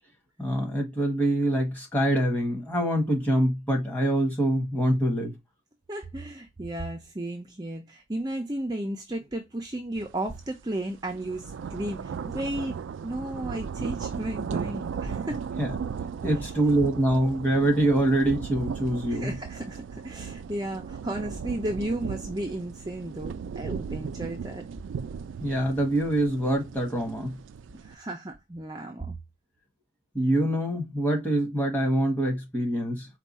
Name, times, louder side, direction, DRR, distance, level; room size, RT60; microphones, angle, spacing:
voice 1, 0.4-5.3 15.6-15.7 16.2-19.3 25.4-27.4 30.1-33.1, right 1 dB, 10° left, 1.3 m, -25 dB
voice 2, 5.9-12.8 13.0-15.4 16.2-16.4 19.1-24.6 27.8-29.1, right 1 dB, 20° right, 0.5 m, -34 dB
sound 1, 10.1-10.3 10.7-28.0, right 6 dB, 75° right, 0.3 m, -36 dB
4.6 x 2.3 x 4.1 m
head